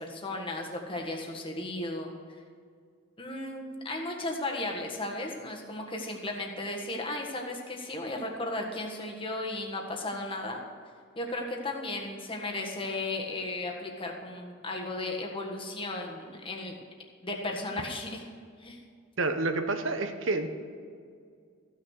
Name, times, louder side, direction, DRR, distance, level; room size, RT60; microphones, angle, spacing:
voice 1, 0.0-2.1 3.2-10.6 11.2-16.8 17.2-18.2 18.6-18.8, left 2 dB, 25° left, 0 dB, 1.5 m, -35 dB
voice 2, 19.2-20.5, right 3 dB, 60° right, 7 dB, 1.0 m, -28 dB
14.5 x 6.5 x 6.4 m, 2.2 s
head